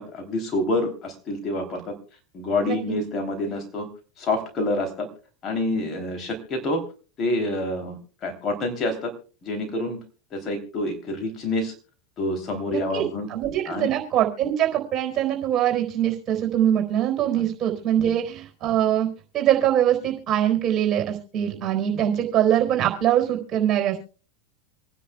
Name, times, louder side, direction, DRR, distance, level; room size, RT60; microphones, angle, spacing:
voice 1, 0.0-1.9 2.3-3.9 4.2-5.1 5.4-6.8 7.2-9.1 9.4-10.0 10.3-11.7 12.2-13.3 13.7-13.9 17.4-17.5 18.0-18.1, left 2 dB, 35° left, 4 dB, 3.2 m, -27 dB
voice 2, 12.7-13.0 13.3-19.1 19.3-24.0, right 11 dB, 35° right, 3 dB, 4.1 m, -23 dB
26.5 x 10.0 x 2.3 m, 0.36 s
hypercardioid pair, 90°, 0 cm